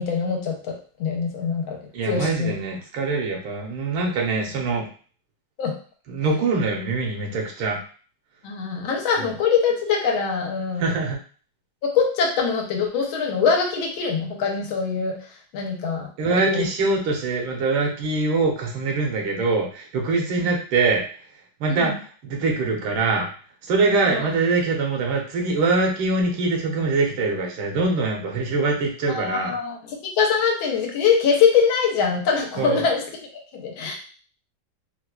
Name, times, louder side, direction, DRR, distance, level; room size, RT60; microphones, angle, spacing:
voice 1, 0.0-1.8 2.0-2.5 5.6-5.7 8.4-10.9 11.8-15.1 15.5-16.6 20.4-20.5 21.7-22.0 24.1-24.2 29.1-33.0 33.5-33.9, left 6 dB, 80° left, 1 dB, 1.6 m, -23 dB
voice 2, 1.9-4.9 6.1-7.8 9.2-9.3 10.8-11.2 16.2-21.0 21.6-21.9 22.2-23.3 23.6-29.5 32.6-32.9, right 3 dB, 85° right, 0 dB, 1.6 m, -23 dB
4.5 x 2.4 x 2.2 m, 0.41 s
omnidirectional pair, 2.2 m